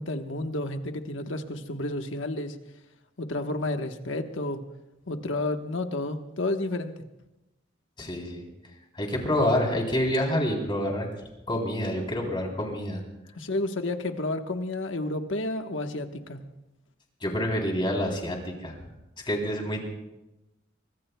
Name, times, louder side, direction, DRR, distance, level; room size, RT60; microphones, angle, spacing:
voice 1, 0.0-2.6 3.2-4.6 5.1-6.9 13.3-16.4, left 2 dB, 90° left, 6 dB, 1.3 m, -31 dB
voice 2, 8.0-8.4 8.9-11.1 11.5-13.0 17.2-18.7 19.2-19.8, left 1 dB, 25° left, 0 dB, 3.5 m, -27 dB
24.0 x 24.0 x 2.3 m, 0.97 s
head